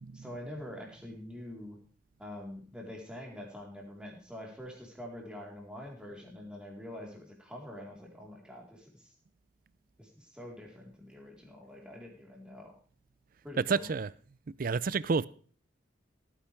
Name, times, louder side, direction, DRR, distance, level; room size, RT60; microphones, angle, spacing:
voice 1, 0.1-1.8 2.2-9.1 10.0-12.7 13.4-13.9, left 1 dB, 5° right, 4.0 m, -45 dB
voice 2, 13.7-14.1 14.6-15.3, right 4 dB, 50° right, 0.4 m, -29 dB
17.0 x 9.9 x 3.5 m
head